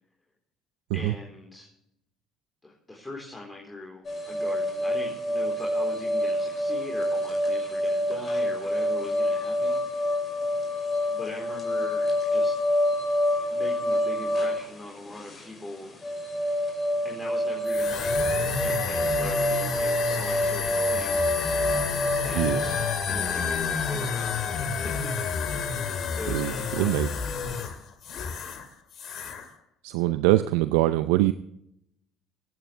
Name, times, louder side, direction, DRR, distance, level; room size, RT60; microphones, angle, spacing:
voice 1, 0.9-1.7 2.6-9.8 11.1-12.6 13.5-16.0 17.0-21.2 22.2-22.8 23.1-24.3 24.8-25.1 26.1-27.0, left 2 dB, 15° left, -2 dB, 4.0 m, -41 dB
sound 1, 4.0-22.9, left 1 dB, 35° left, 5.8 m, -27 dB
sound 2, 17.7-28.7 28.9-29.4, left 5 dB, 55° left, 2.5 m, -30 dB
voice 2, 26.3-27.1 29.8-31.3, right 16 dB, 80° right, 11 dB, 0.5 m, -23 dB
24.5 x 9.2 x 3.4 m, 0.76 s
hypercardioid pair, 70°, 0 cm